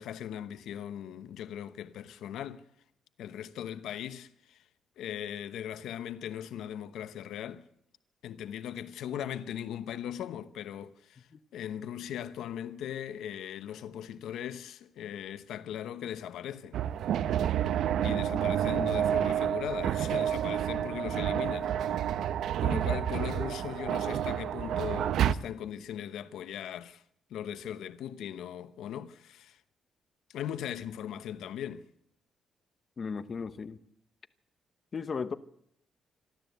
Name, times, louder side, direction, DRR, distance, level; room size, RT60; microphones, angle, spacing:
voice 1, 0.0-2.6 3.2-4.6 5.0-7.6 8.2-16.8 18.0-22.0 22.6-27.0 27.3-29.6 30.3-31.9, left 10 dB, 90° left, 0.9 m, -39 dB
sound 1, 16.7-25.3, right 10 dB, 75° right, 0.7 m, -29 dB
voice 2, 33.0-33.8 34.9-35.4, left 5 dB, 35° left, 0.9 m, -35 dB
26.5 x 12.5 x 8.1 m
cardioid pair, 140°, 0 cm